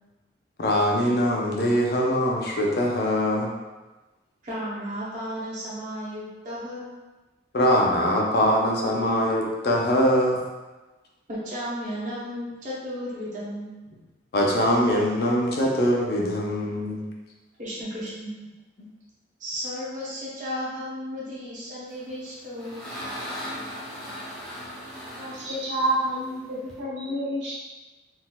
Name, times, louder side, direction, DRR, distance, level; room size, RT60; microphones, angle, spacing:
voice 1, 0.6-3.5 7.5-10.4 14.3-17.0, equal, 55° left, -1 dB, 0.5 m, -22 dB
voice 2, 4.4-6.9 11.3-13.7 17.6-18.3 19.4-22.8, equal, 40° right, -9 dB, 0.8 m, -34 dB
sound 1, 22.1-26.8, equal, 5° left, 0.6 m, -38 dB
voice 3, 25.1-27.5, right 1 dB, 65° right, -8 dB, 1.2 m, -28 dB
3.9 x 2.4 x 2.3 m, 1.2 s
head